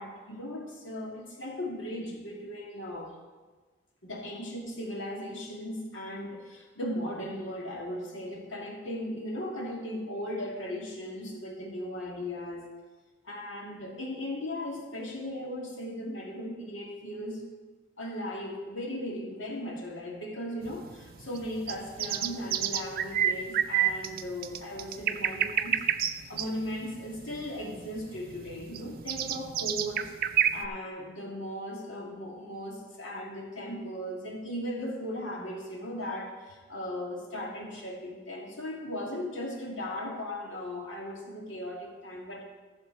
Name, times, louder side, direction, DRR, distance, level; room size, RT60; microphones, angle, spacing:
voice 1, 0.0-3.1 4.0-12.7 13.2-17.4 18.0-25.8 26.3-30.1 30.5-42.4, left 1 dB, 75° left, 0 dB, 2.1 m, -37 dB
sound 1, 20.6-30.7, right 10 dB, 50° right, 0.5 m, -30 dB
14.0 x 7.2 x 4.5 m, 1.4 s
head